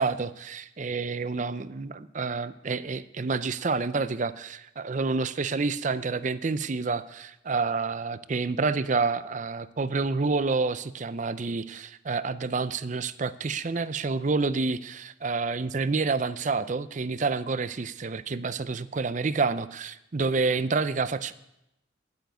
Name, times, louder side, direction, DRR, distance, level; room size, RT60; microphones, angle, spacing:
voice 1, 0.0-21.3, right 4 dB, 40° right, 14 dB, 0.5 m, -28 dB
9.3 x 9.1 x 9.2 m, 0.88 s
head